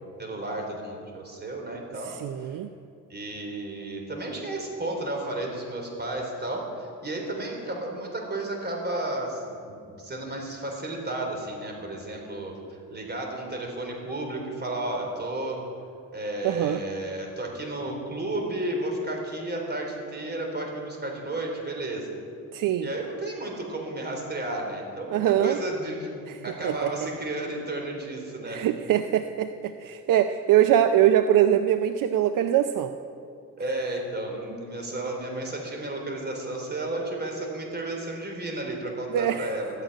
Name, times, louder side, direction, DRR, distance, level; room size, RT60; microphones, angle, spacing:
voice 1, 0.2-2.1 2.4-2.6 3.1-15.6 16.1-22.1 22.8-28.6 33.6-39.8, right 1 dB, 30° right, 1 dB, 3.9 m, -33 dB
voice 2, 2.2-2.7 16.4-16.8 22.5-22.9 25.1-25.6 26.3-26.4 26.6-26.9 28.5-29.5 29.8-32.9 39.1-39.5, right 11 dB, 70° right, 9 dB, 0.6 m, -22 dB
13.0 x 9.1 x 9.2 m, 2.5 s
cardioid pair, 90°, 33 cm